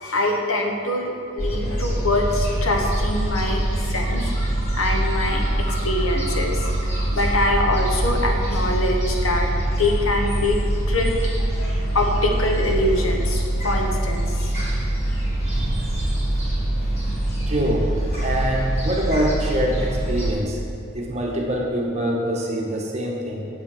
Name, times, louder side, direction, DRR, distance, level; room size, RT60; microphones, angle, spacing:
voice 1, 0.0-4.5 4.8-10.6 10.9-14.5, left 1 dB, 85° left, 2 dB, 1.3 m, -24 dB
Gull seagull, 1.4-20.3, right 1 dB, 35° left, 2.5 m, -24 dB
voice 2, 15.4-16.2 17.5-17.9 18.2-20.6 20.9-23.5, right 1 dB, 30° right, -2 dB, 1.3 m, -25 dB
8.4 x 8.0 x 4.7 m, 2.5 s
head